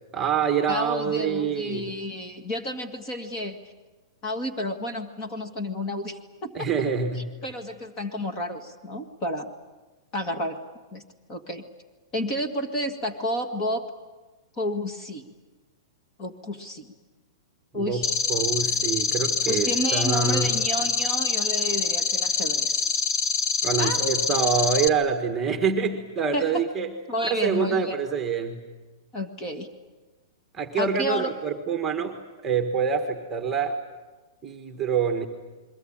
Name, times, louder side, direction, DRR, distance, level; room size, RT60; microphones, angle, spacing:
voice 1, 0.1-1.9 6.5-7.3 17.7-18.0 18.3-20.6 23.6-26.9 27.3-28.6 30.5-32.2 32.4-33.8 34.4-35.3, right 6 dB, 10° right, 4 dB, 1.6 m, -26 dB
voice 2, 0.7-3.6 4.2-6.7 7.4-9.5 10.1-10.6 10.9-11.0 11.3-11.6 12.1-13.9 14.6-15.3 16.2-16.9 17.7-18.1 19.5-23.1 23.8-24.1 26.3-26.6 27.1-28.0 29.1-29.7 30.8-31.3, left 1 dB, 20° left, 5 dB, 1.8 m, -31 dB
sound 1, 18.0-24.9, left 5 dB, 55° left, 1.4 m, -25 dB
29.0 x 22.5 x 8.9 m, 1.2 s
hypercardioid pair, 175°, 2 cm